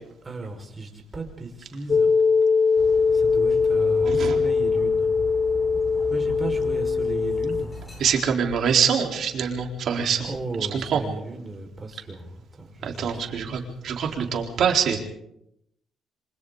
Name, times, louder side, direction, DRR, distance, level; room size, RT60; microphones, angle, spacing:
voice 1, 0.2-2.1 3.1-5.1 6.1-7.7 10.2-13.6, right 2 dB, 25° right, 2 dB, 5.4 m, -36 dB
sound 1, 1.9-7.6, left 5 dB, 40° left, 0.9 m, -21 dB
Dog, 2.8-8.1, left 1 dB, 20° left, 6.6 m, -39 dB
voice 2, 4.0-4.4 8.0-10.3 10.7-11.0 12.8-15.0, right 7 dB, 65° right, 2 dB, 4.1 m, -24 dB
27.5 x 25.5 x 4.1 m, 0.80 s
cardioid pair, 90°, 0 cm